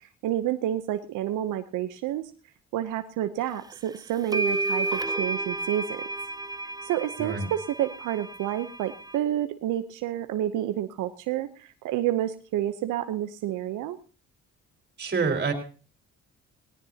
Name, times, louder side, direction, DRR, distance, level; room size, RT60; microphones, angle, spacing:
voice 1, 0.2-2.3 2.7-6.0 6.8-14.0, right 12 dB, 85° right, 9 dB, 0.8 m, -29 dB
sound 1, 3.7-3.8 4.3-9.2, right 2 dB, 15° right, 0.6 m, -31 dB
voice 2, 15.0-15.5, right 4 dB, 35° right, 3 dB, 4.7 m, -26 dB
18.5 x 18.0 x 2.8 m, 0.37 s
cardioid pair, 90°, 30 cm